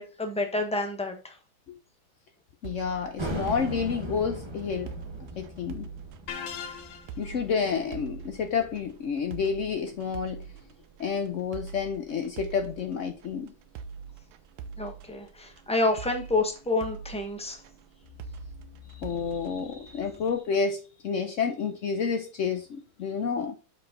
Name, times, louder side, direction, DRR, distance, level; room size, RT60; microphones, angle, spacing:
voice 1, 0.0-1.3 7.2-7.4 14.8-17.6, left 2 dB, 5° left, 0.9 m, -29 dB
voice 2, 2.6-5.0 5.4-5.9 7.2-10.5 11.0-13.5 18.9-23.6, left 6 dB, 90° left, 0.6 m, -30 dB
sound 1, 2.6-20.4, right 6 dB, 80° right, 1.4 m, -44 dB
sound 2, 3.2-8.5, right 1 dB, 20° right, 0.8 m, -38 dB
sound 3, 6.3-7.3, left 7 dB, 55° left, 0.8 m, -38 dB
6.6 x 4.8 x 3.8 m
omnidirectional pair, 2.2 m